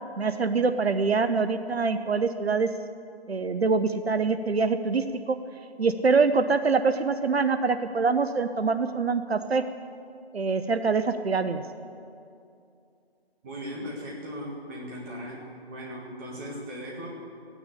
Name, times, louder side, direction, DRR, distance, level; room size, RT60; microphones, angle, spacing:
voice 1, 0.2-2.7 3.3-5.4 5.8-9.6 10.3-11.6, right 4 dB, 70° right, 10 dB, 0.9 m, -24 dB
voice 2, 13.4-17.1, equal, 15° right, -4 dB, 1.9 m, -38 dB
15.5 x 9.6 x 8.3 m, 2.5 s
figure-of-eight pair, 160°, 32 cm